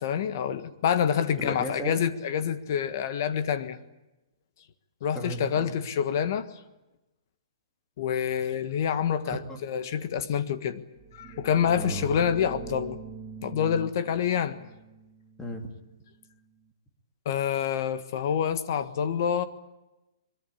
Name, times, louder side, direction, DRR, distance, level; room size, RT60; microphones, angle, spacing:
voice 1, 0.0-3.8 5.0-6.5 8.0-10.8 11.1-13.0 13.4-14.6 17.2-19.5, left 8 dB, 35° left, 12 dB, 1.5 m, -27 dB
voice 2, 1.4-2.0 5.1-5.8 9.2-9.6 11.8-12.1 15.4-15.7, right 1 dB, 5° left, 3 dB, 2.5 m, -35 dB
sound 1, 10.9-16.5, right 5 dB, 15° right, 1.2 m, -44 dB
23.0 x 23.0 x 8.6 m, 0.98 s
hypercardioid pair, 175°, 3 cm